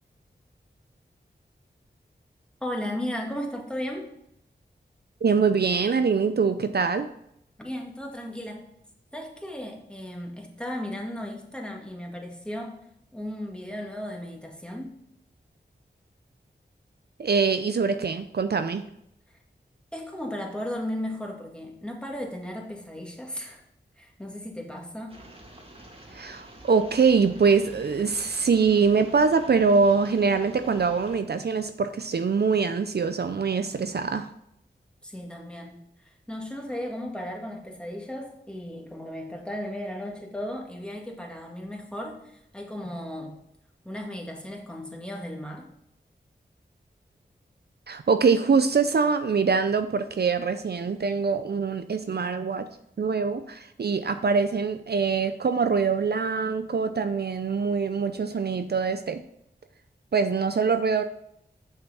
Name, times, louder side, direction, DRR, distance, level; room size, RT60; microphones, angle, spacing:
voice 1, 2.6-4.1 7.6-8.7 9.1-12.8 13.1-15.0 19.9-23.6 24.0-25.2 35.0-43.4 43.8-45.7, left 1 dB, 5° left, 0 dB, 2.0 m, -35 dB
voice 2, 5.2-7.1 17.2-18.8 26.1-34.3 47.9-52.7 53.0-59.2 60.1-61.0, right 5 dB, 60° right, 9 dB, 0.5 m, -24 dB
sound 1, 25.1-31.2, right 1 dB, 30° right, 1.9 m, -48 dB
7.1 x 5.7 x 5.5 m, 0.75 s
cardioid pair, 50°, 19 cm